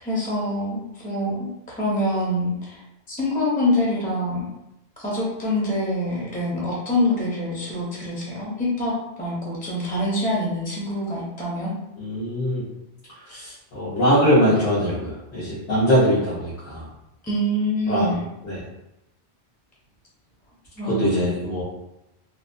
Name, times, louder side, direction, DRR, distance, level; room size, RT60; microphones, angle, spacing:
voice 1, 0.0-1.5 1.7-2.8 3.1-4.5 5.0-11.7 17.2-18.3 20.8-21.2, left 1 dB, 15° left, -5 dB, 0.4 m, -25 dB
voice 2, 12.0-12.6 13.3-16.9 17.9-18.1 18.4-18.6 20.8-21.6, equal, 85° left, -11 dB, 1.2 m, -22 dB
2.9 x 2.0 x 2.5 m, 0.89 s
omnidirectional pair, 1.1 m